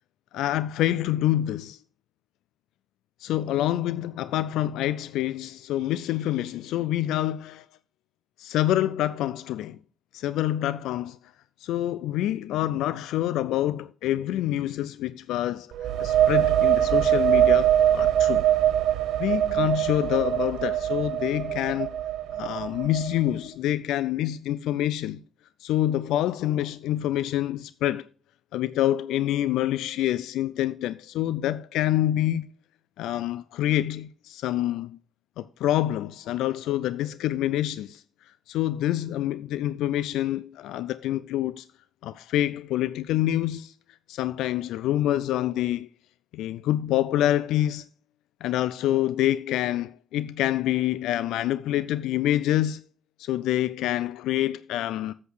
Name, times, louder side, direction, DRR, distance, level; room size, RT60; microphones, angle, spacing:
voice 1, 0.3-1.8 3.2-7.7 8.4-9.8 10.1-11.2 11.6-18.5 19.2-21.9 22.3-25.2 25.6-28.1 28.5-32.5 33.0-35.0 35.4-41.7 42.0-43.7 44.1-45.9 46.3-47.9 48.4-52.8 53.2-55.1, left 13 dB, 90° left, 0.3 m, -27 dB
sound 1, 15.7-23.3, right 11 dB, 80° right, 0.6 m, -23 dB
8.3 x 8.2 x 4.7 m
cardioid pair, 90°, 0 cm